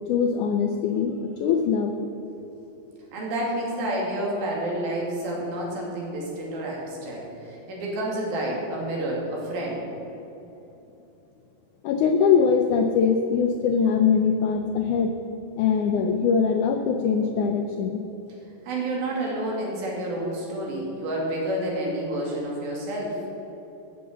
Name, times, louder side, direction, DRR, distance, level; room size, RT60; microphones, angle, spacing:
voice 1, 0.1-1.9 11.8-15.1 15.6-18.0, left 6 dB, 80° left, 5 dB, 1.7 m, -22 dB
voice 2, 3.1-9.8 18.6-23.2, right 1 dB, 75° right, -3 dB, 4.3 m, -29 dB
14.5 x 6.9 x 6.7 m, 3.0 s
omnidirectional pair, 4.3 m